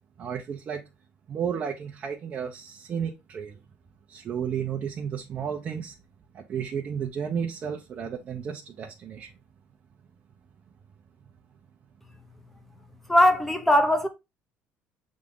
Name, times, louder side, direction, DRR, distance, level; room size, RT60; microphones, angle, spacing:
voice 1, 0.2-0.8 1.3-3.6 4.1-5.9 6.3-9.3, right 7 dB, 35° right, 1.0 m, -32 dB
voice 2, 13.1-14.1, left 1 dB, 5° left, 1.0 m, -20 dB
7.5 x 3.8 x 3.8 m
cardioid pair, 160°, 4 cm